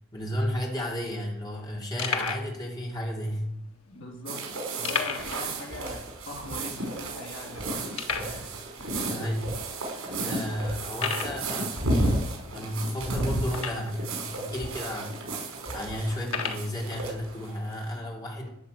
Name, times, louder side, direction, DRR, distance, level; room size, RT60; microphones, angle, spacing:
voice 1, 0.1-3.5 9.0-9.5 9.8-15.1 15.7-18.5, equal, 20° left, -2 dB, 2.8 m, -33 dB
sound 1, 0.5-0.6 0.8-1.0 1.5-1.6 2.0-2.5 3.3-3.4 4.8-5.4 5.7-5.8 6.3-6.4 6.9-7.0 8.0-8.4 9.2-9.3 9.9-10.0 10.9-11.4 13.5-14.0 14.8-14.9 16.2-16.7, left 6 dB, 80° left, 1.7 m, -32 dB
voice 2, 3.9-9.1, left 2 dB, 60° left, -1 dB, 3.4 m, -42 dB
sound 2, 4.3-17.9, right 1 dB, 85° right, 5.3 m, -33 dB
13.5 x 6.8 x 9.3 m, 0.78 s
head